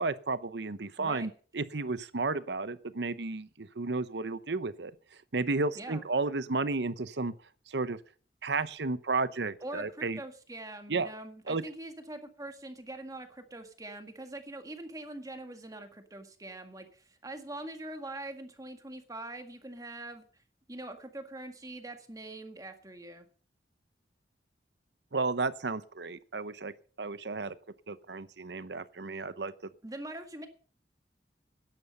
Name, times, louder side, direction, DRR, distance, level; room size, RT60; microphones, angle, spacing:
voice 1, 0.0-4.9 5.3-7.3 7.7-8.0 8.4-10.2 10.9-11.1 11.5-11.6 25.1-26.7 27.0-27.5 27.9-29.5, right 3 dB, 75° right, 0.9 m, -32 dB
voice 2, 1.0-1.3 5.8-6.1 9.6-20.2 20.7-23.3 29.8-30.5, right 2 dB, 20° right, 1.8 m, -43 dB
13.0 x 10.5 x 5.5 m
head